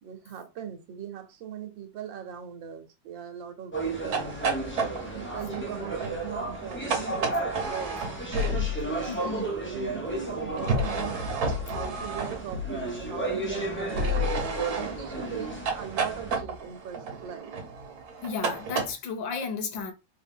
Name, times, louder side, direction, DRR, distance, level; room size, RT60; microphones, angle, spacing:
voice 1, 0.0-4.4 5.1-8.0 8.8-17.5, right 8 dB, 80° right, 1.5 m, -39 dB
sound 1, 3.7-16.3, right 2 dB, 20° left, 0.3 m, -34 dB
sound 2, 4.0-9.0 10.6-12.8 13.9-18.9, right 1 dB, 55° right, 1.3 m, -32 dB
voice 2, 9.1-9.4 18.2-19.9, left 5 dB, 75° left, 1.4 m, -33 dB
3.6 x 2.7 x 3.6 m
omnidirectional pair, 2.0 m